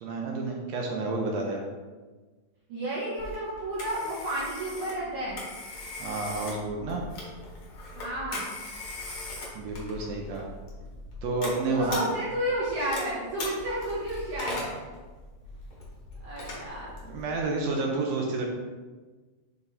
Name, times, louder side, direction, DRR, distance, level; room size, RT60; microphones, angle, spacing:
voice 1, 0.0-1.6 6.0-7.0 9.5-10.5 11.2-12.1 17.0-18.4, right 3 dB, 85° right, 0 dB, 1.5 m, -30 dB
voice 2, 2.7-5.4 7.9-8.5 11.7-14.7 16.2-16.9, right 1 dB, 65° right, -10 dB, 2.8 m, -31 dB
Telephone, 3.2-17.4, left 2 dB, 85° left, 0.8 m, -40 dB
7.1 x 4.1 x 3.4 m, 1.3 s
omnidirectional pair, 4.0 m